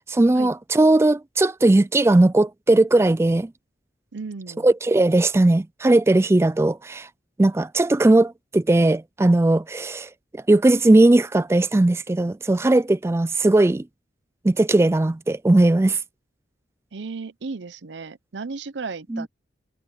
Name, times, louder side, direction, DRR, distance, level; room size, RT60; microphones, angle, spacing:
voice 1, 0.1-3.5 4.6-7.1 7.4-13.8 14.4-16.0 19.1-19.3, right 2 dB, 15° right, 0.3 m, -18 dB
voice 2, 4.1-4.7 16.9-19.3, right 4 dB, 90° right, 0.7 m, -34 dB
head